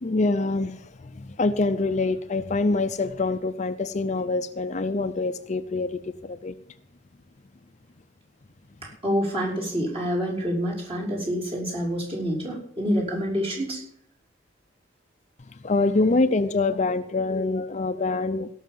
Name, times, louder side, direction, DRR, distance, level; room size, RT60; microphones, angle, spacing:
voice 1, 0.0-6.5 15.6-18.5, left 3 dB, 40° left, 10 dB, 0.6 m, -25 dB
voice 2, 8.8-13.8, equal, 30° right, -3 dB, 5.5 m, -27 dB
17.0 x 6.5 x 7.6 m, 0.66 s
head